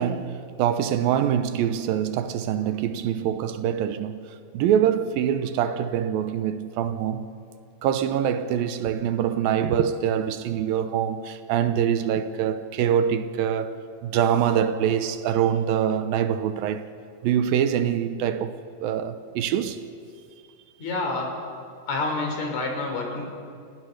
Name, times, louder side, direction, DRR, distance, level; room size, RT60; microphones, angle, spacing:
voice 1, 0.0-4.3 4.5-7.3 7.8-13.7 14.0-16.9 17.2-19.8, right 9 dB, 80° right, 2.6 m, -24 dB
voice 2, 20.8-21.3 21.9-23.3, left 3 dB, 50° left, 4.6 m, -28 dB
29.0 x 17.0 x 6.5 m
omnidirectional pair, 4.2 m